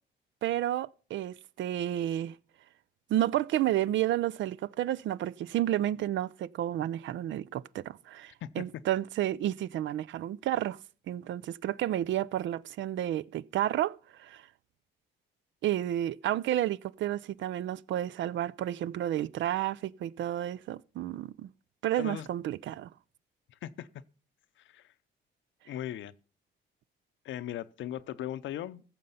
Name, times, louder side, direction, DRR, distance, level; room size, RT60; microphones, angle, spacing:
voice 1, 0.4-2.4 3.1-10.8 11.1-14.4 15.6-21.5 21.8-22.9, right 12 dB, 70° right, 0.5 m, -31 dB
voice 2, 22.0-22.3 23.6-23.9 24.6-24.8 25.7-26.1 27.2-28.8, left 12 dB, 75° left, 0.7 m, -38 dB
14.5 x 6.8 x 5.6 m
cardioid pair, 90°, 20 cm